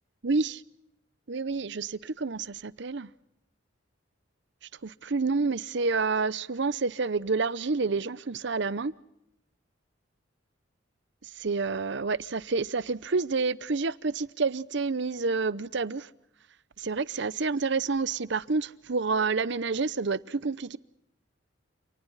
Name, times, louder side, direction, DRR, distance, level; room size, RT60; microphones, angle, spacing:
voice 1, 0.2-0.6 1.3-3.1 4.8-8.9 11.4-16.1 16.8-20.8, right 4 dB, 65° right, 0.7 m, -29 dB
30.0 x 28.5 x 4.1 m
head